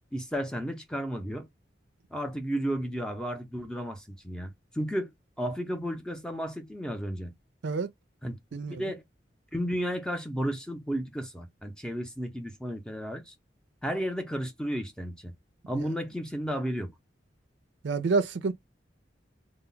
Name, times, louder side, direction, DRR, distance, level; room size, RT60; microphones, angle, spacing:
voice 1, 0.1-1.5 2.1-5.1 5.4-7.3 8.2-8.4 8.7-9.0 9.5-13.3 13.8-15.3 15.7-16.9, equal, 5° left, 0.5 m, -33 dB
voice 2, 8.5-8.9 15.7-15.9 17.8-18.5, right 4 dB, 80° right, 0.5 m, -28 dB
2.2 x 2.0 x 3.8 m
head